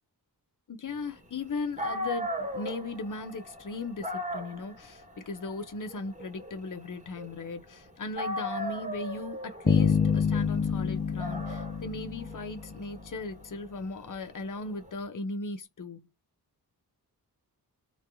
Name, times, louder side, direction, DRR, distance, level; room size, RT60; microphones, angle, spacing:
voice 1, 0.7-16.1, left 3 dB, 50° left, 0.9 m, -37 dB
Dog, 1.5-1.6 1.8-7.8 8.2-14.9, left 1 dB, 20° right, 1.1 m, -38 dB
sound 1, 9.7-13.1, left 6 dB, 20° left, 0.5 m, -27 dB
3.3 x 2.3 x 2.7 m
wide cardioid pair, 85°, 39 cm